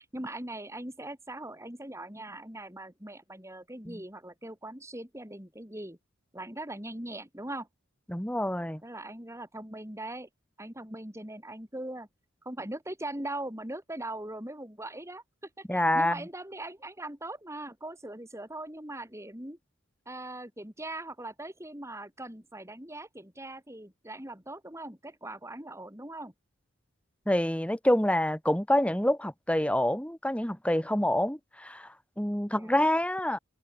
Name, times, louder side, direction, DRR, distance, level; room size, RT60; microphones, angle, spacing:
voice 1, 0.0-6.0 6.3-7.7 8.8-10.3 10.6-12.1 12.4-15.2 15.6-19.6 20.0-26.3 32.6-32.8, right 1 dB, 15° right, 6.7 m, -40 dB
voice 2, 8.1-8.8 15.7-16.2 27.3-33.4, left 1 dB, 5° left, 2.5 m, -27 dB
head